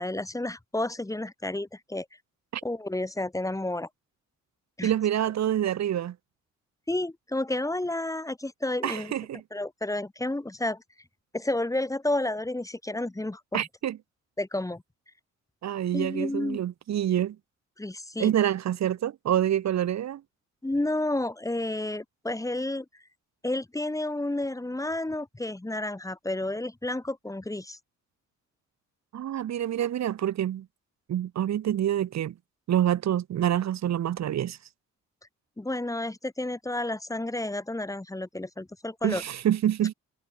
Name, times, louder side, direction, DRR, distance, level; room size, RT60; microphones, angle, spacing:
voice 1, 0.0-2.1 2.6-3.9 4.8-4.9 6.9-9.1 9.5-10.8 11.3-13.6 14.4-14.8 15.9-16.6 17.8-18.3 20.6-22.9 23.4-27.8 35.6-39.2, left 1 dB, 10° left, 2.4 m, -31 dB
voice 2, 4.8-6.1 8.8-9.4 13.5-14.0 15.6-17.4 18.2-20.2 29.1-30.6 31.1-32.3 32.7-34.6 39.0-39.9, right 11 dB, 60° right, 1.6 m, -27 dB
cardioid pair, 90°, 30 cm